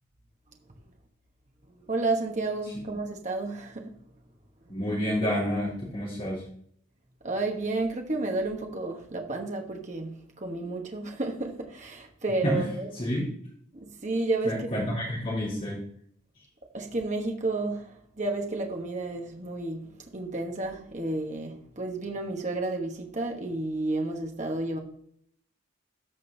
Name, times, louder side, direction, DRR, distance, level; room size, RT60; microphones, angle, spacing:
voice 1, 1.9-3.9 7.2-12.9 14.0-14.9 16.7-24.8, right 2 dB, 35° right, 1.2 m, -31 dB
voice 2, 4.7-6.4 12.4-13.3 14.4-15.8, equal, 45° left, 3.5 m, -29 dB
14.5 x 5.2 x 2.7 m
head